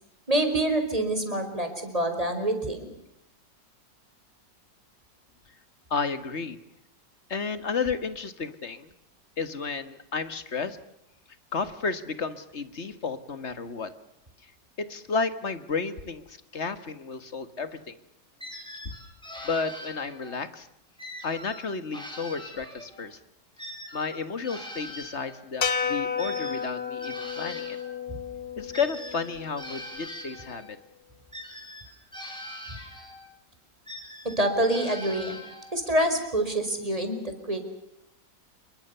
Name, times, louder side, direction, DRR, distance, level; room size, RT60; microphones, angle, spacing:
voice 1, 0.3-2.9 34.4-35.4 35.7-37.6, right 1 dB, 20° right, 6 dB, 5.2 m, -26 dB
voice 2, 5.9-6.6 7.3-8.9 9.4-10.8 11.5-13.9 14.8-18.0 18.9-19.0 19.4-20.7 21.2-23.2 23.9-27.8 28.6-30.8, left 5 dB, 40° left, 12 dB, 1.9 m, -32 dB
sound 1, 18.4-20.4 21.0-23.1 23.6-27.9 28.7-30.7 31.3-33.3 33.9-35.8, equal, ahead, 6.4 m, -42 dB
sound 2, 25.6-30.0, left 7 dB, 55° left, 2.0 m, -32 dB
28.0 x 23.5 x 6.9 m, 0.81 s
omnidirectional pair, 1.9 m